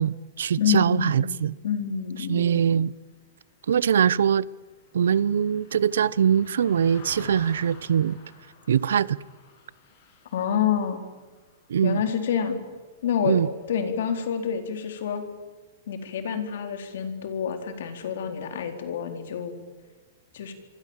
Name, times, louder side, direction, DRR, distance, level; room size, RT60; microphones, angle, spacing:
voice 1, 0.0-1.6 2.3-2.9 3.7-4.4 4.9-8.2 8.7-9.2 11.7-12.0 13.2-13.5, right 8 dB, 85° right, 0.7 m, -22 dB
voice 2, 0.6-2.7 10.3-11.0 11.8-12.6 13.0-13.4 13.7-15.2 15.9-19.6 20.3-20.5, left 8 dB, 70° left, 4.2 m, -28 dB
Car passing by, 3.5-13.0 13.4-13.6, left 5 dB, 55° left, 7.2 m, -50 dB
27.0 x 24.0 x 7.4 m
hypercardioid pair, 150°, 0 cm